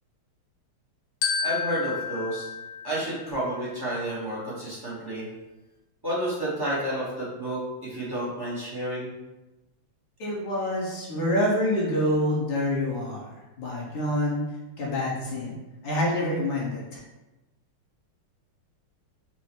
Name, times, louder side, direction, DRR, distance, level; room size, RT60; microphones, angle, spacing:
Glockenspiel, 1.2-3.7, left 6 dB, 85° left, 1.5 m, -31 dB
voice 1, 1.4-2.5 2.8-5.3 6.0-9.1, right 1 dB, 30° right, -8 dB, 0.4 m, -30 dB
voice 2, 10.2-14.4 14.8-15.6 15.8-17.0, left 1 dB, 55° left, -5 dB, 1.4 m, -27 dB
4.6 x 2.0 x 4.3 m, 1.1 s
omnidirectional pair, 2.3 m